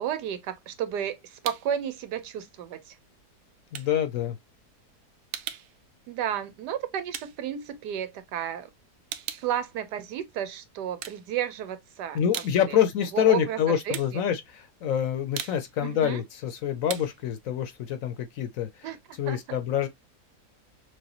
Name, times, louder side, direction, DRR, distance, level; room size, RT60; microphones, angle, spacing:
voice 1, 0.0-3.0 6.1-8.7 9.4-12.2 12.6-12.8 13.1-14.2 15.8-16.2 18.8-19.0 19.3-19.6, right 10 dB, 85° right, 1.4 m, -32 dB
sound 1, 0.6-1.8 2.2-8.4 8.7-10.5 10.9-11.8 12.1-18.8, right 10 dB, 70° right, 1.0 m, -41 dB
voice 2, 3.7-4.4 12.1-18.9 19.2-19.9, left 9 dB, 65° left, 0.9 m, -26 dB
6.3 x 2.2 x 2.9 m
omnidirectional pair, 1.7 m